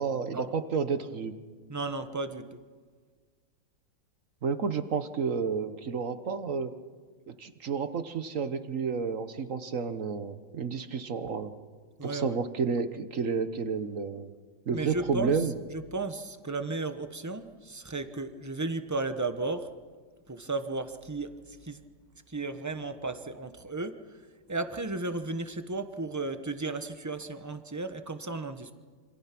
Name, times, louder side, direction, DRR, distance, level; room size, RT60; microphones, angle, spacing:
voice 1, 0.0-1.3 4.4-6.7 7.3-11.5 12.0-14.3 14.7-15.5, right 5 dB, 50° right, 10 dB, 1.3 m, -31 dB
voice 2, 1.7-2.6 12.0-12.4 14.7-15.3 15.7-19.7 20.3-21.8 22.3-24.0 24.5-28.7, right 3 dB, 15° right, 9 dB, 0.7 m, -34 dB
27.5 x 26.0 x 6.0 m, 1.5 s
omnidirectional pair, 2.0 m